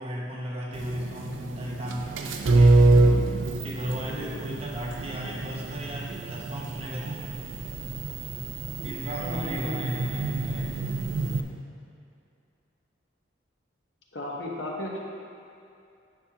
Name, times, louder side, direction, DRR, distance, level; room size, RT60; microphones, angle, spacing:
voice 1, 0.0-2.8 3.4-7.3 8.8-10.7, equal, 30° right, -3 dB, 1.0 m, -35 dB
sound 1, 0.7-11.4, right 2 dB, 75° right, 0.5 m, -26 dB
voice 2, 4.1-4.5 9.2-9.9 14.1-15.0, left 1 dB, 65° left, -2 dB, 1.1 m, -35 dB
10.5 x 5.6 x 2.9 m, 2.6 s
head